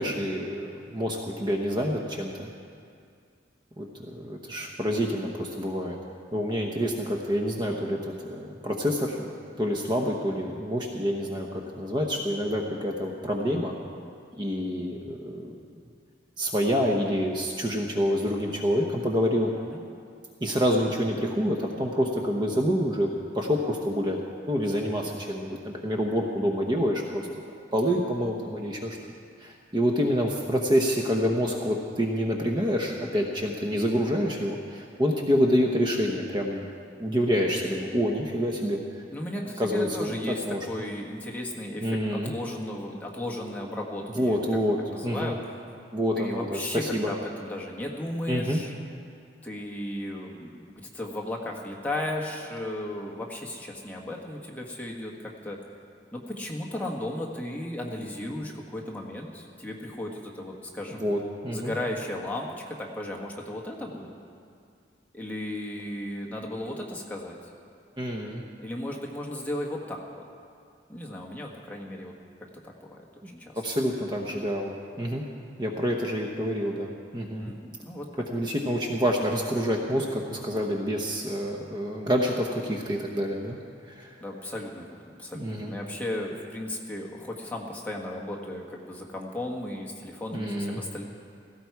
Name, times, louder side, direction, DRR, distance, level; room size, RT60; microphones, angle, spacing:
voice 1, 0.0-2.5 3.8-6.0 6.3-9.3 9.6-13.7 14.4-15.5 16.4-19.5 20.4-24.2 24.5-27.3 27.7-29.0 29.4-36.6 37.0-39.0 39.6-40.6 41.8-42.3 44.2-44.8 45.0-45.3 45.9-47.1 48.3-48.6 61.0-61.7 68.0-68.4 73.5-75.3 75.6-77.5 78.3-83.6 83.9-84.1 85.3-85.7 90.3-90.8, equal, 25° right, 0 dB, 0.9 m, -27 dB
voice 2, 39.1-45.4 46.2-48.7 49.4-55.6 56.1-61.1 61.5-64.1 65.1-67.4 68.6-70.2 70.9-72.1 72.6-73.5 77.4-78.4 84.2-91.0, left 1 dB, 10° left, -2 dB, 1.4 m, -35 dB
16.5 x 14.5 x 4.7 m, 2.3 s
head